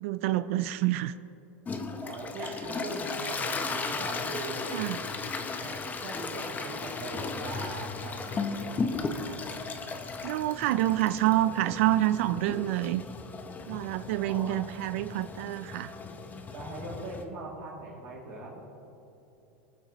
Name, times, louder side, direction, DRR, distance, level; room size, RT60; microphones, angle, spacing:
voice 1, 0.0-1.1 2.4-2.5 4.7-5.0 10.2-13.0 13.7-15.9, right 14 dB, 65° right, 13 dB, 0.4 m, -27 dB
Toilet flush, 1.7-17.2, left 4 dB, 20° left, 1.0 m, -36 dB
voice 2, 2.0-4.8 5.6-9.4 14.2-14.6 16.5-18.6, right 2 dB, 50° right, -8 dB, 2.8 m, -40 dB
23.5 x 8.1 x 3.1 m, 3.0 s
supercardioid pair, 115°, 8 cm